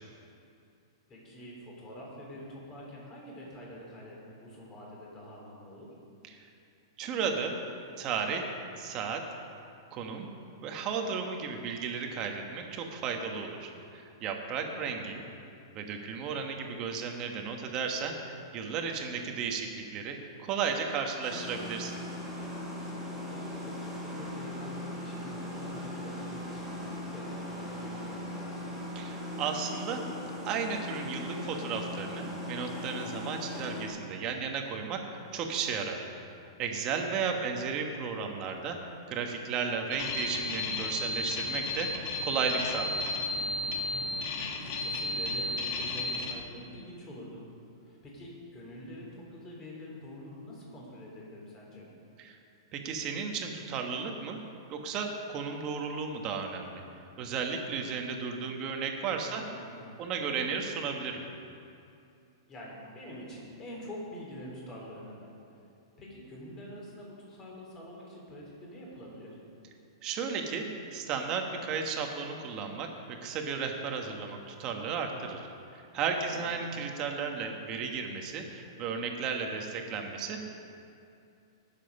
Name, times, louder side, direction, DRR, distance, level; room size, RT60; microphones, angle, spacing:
voice 1, 1.1-5.9 14.5-15.1 23.3-28.7 37.4-37.7 44.5-47.4 47.8-51.9 59.3-60.2 62.5-65.3 66.0-69.4 76.2-76.5, equal, 20° left, -3 dB, 3.5 m, -46 dB
voice 2, 7.0-7.5 8.0-8.4 8.8-9.2 9.9-10.3 10.6-15.2 15.7-18.1 18.5-22.0 28.9-30.0 30.4-35.0 35.3-36.1 36.6-38.8 39.1-41.9 42.2-43.1 52.2-52.4 52.7-54.4 54.7-56.8 57.2-59.4 60.0-61.2 70.0-70.6 70.9-72.9 73.2-75.5 75.7-80.6, right 5 dB, 30° right, 3 dB, 1.4 m, -34 dB
sound 1, 21.2-33.9, left 1 dB, ahead, 3.6 m, -39 dB
sound 2, 39.9-46.3, left 2 dB, 45° left, 1.5 m, -33 dB
19.0 x 7.5 x 5.5 m, 2.6 s
hypercardioid pair, 160°, 2 cm